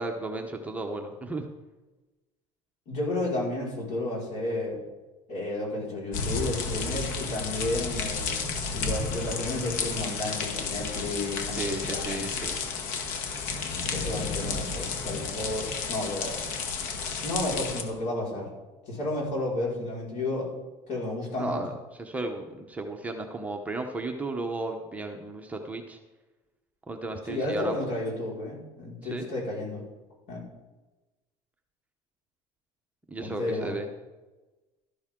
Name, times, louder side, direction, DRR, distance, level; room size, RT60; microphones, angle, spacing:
voice 1, 0.0-1.5 11.4-12.6 21.4-21.7 22.0-26.0 26.9-27.7 29.1-29.3 33.1-33.9, right 2 dB, 10° right, 3 dB, 0.9 m, -34 dB
voice 2, 2.9-4.8 5.3-8.3 8.7-12.3 13.8-16.4 17.2-18.5 18.9-20.5 20.9-21.6 27.3-29.8 30.3-30.4 33.2-33.8, left 2 dB, 60° left, -3 dB, 5.1 m, -32 dB
sound 1, 6.1-17.8, left 4 dB, 75° left, 1.7 m, -32 dB
12.5 x 12.0 x 3.8 m, 1.1 s
cardioid pair, 150°, 14 cm